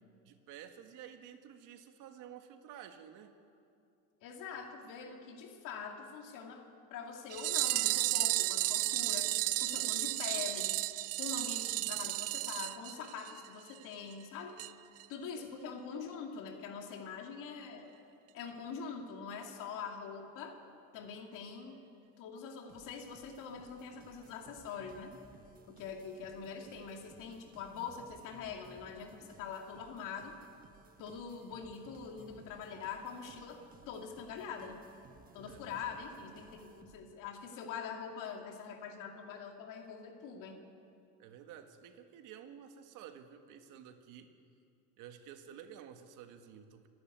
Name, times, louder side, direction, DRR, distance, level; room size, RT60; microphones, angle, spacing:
voice 1, 0.2-3.3 15.3-15.5 35.5-35.7 41.2-44.3 45.0-46.9, right 9 dB, 75° right, 6 dB, 1.9 m, -52 dB
voice 2, 4.2-6.6 6.9-9.3 9.6-10.8 11.2-14.6 15.1-17.9 18.3-20.6 20.9-21.8 22.2-25.1 25.7-30.4 31.0-34.8 35.3-40.6, left 6 dB, 75° left, 3 dB, 2.5 m, -44 dB
sound 1, 7.3-13.5 13.8-13.9 14.1-14.2 14.6-14.7 15.0-15.1, right 17 dB, 50° right, 0.4 m, -33 dB
sound 2, 22.7-37.3, right 5 dB, 25° right, 1.4 m, -60 dB
25.5 x 11.5 x 9.4 m, 2.5 s
cardioid pair, 155°, 31 cm